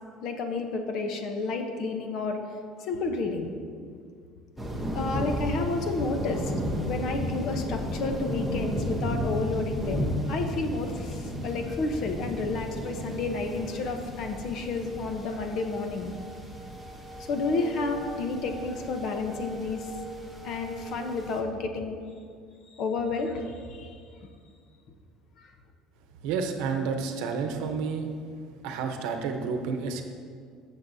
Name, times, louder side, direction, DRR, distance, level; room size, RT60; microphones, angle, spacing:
voice 1, 0.2-2.4 2.8-3.5 3.8-3.9 4.9-6.5 6.8-16.1 17.3-19.9 20.4-22.0 22.8-24.0 25.4-25.5, left 3 dB, 45° left, 5 dB, 0.8 m, -31 dB
sound 1, 4.6-21.4, equal, ahead, 0.9 m, -34 dB
voice 2, 26.2-28.1 28.6-30.0, right 5 dB, 70° right, 5 dB, 0.9 m, -30 dB
13.5 x 7.2 x 2.7 m, 2.2 s
cardioid pair, 165°, 0 cm